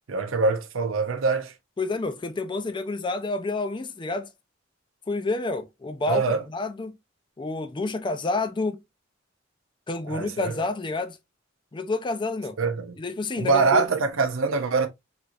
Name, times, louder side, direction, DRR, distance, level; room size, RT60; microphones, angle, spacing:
voice 1, 0.1-1.5 6.1-6.4 10.1-10.5 12.6-13.0 13.4-14.9, right 4 dB, 90° right, 0.7 m, -24 dB
voice 2, 1.8-4.3 5.1-6.2 6.5-6.9 7.4-8.8 9.9-11.2 11.7-12.6 13.0-13.9, left 3 dB, 25° left, 0.4 m, -29 dB
3.3 x 2.9 x 2.4 m
head